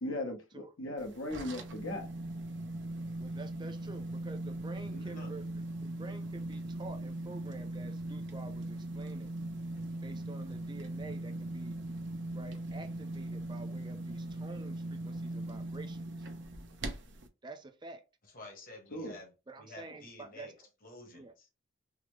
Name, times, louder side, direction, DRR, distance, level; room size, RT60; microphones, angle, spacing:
voice 1, 0.0-2.1 18.9-19.2, left 1 dB, 80° left, 0.9 m, -38 dB
sound 1, 1.0-17.3, right 1 dB, 60° right, 0.6 m, -40 dB
voice 2, 3.2-5.4 5.8-9.3 10.0-11.8 12.3-16.3 17.4-18.0 19.5-20.5 21.1-21.3, right 3 dB, 25° right, 0.5 m, -48 dB
voice 3, 4.9-5.3 18.2-19.3 19.6-20.5 20.8-21.5, left 1 dB, 45° left, 1.1 m, -50 dB
3.6 x 2.0 x 3.1 m
head